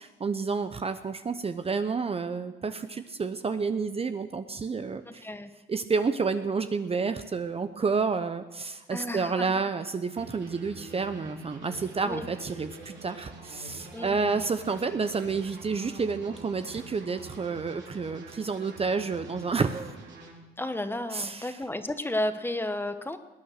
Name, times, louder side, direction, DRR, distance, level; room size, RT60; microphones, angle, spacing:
voice 1, 0.0-5.3 5.7-19.9 21.1-21.6, right 4 dB, 30° right, 9 dB, 0.8 m, -30 dB
voice 2, 5.0-5.5 8.9-9.5 12.0-12.2 13.9-14.4 20.6-23.2, left 1 dB, 10° left, 9 dB, 1.1 m, -32 dB
sound 1, 10.1-20.3, right 3 dB, 65° right, 4.0 m, -46 dB
19.5 x 9.3 x 6.6 m, 1.1 s
cardioid pair, 90°, 20 cm